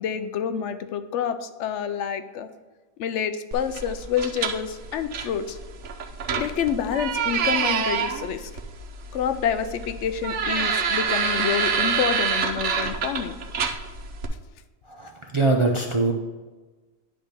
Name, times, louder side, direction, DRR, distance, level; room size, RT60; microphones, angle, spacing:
voice 1, 0.0-2.5 3.0-5.6 6.4-8.5 9.1-13.3, left 8 dB, 65° left, 10 dB, 0.8 m, -28 dB
sound 1, 3.5-14.3, right 6 dB, 60° right, 1.0 m, -27 dB
voice 2, 14.8-16.1, right 3 dB, 40° right, 1 dB, 0.4 m, -23 dB
10.5 x 3.4 x 5.8 m, 1.2 s
omnidirectional pair, 1.5 m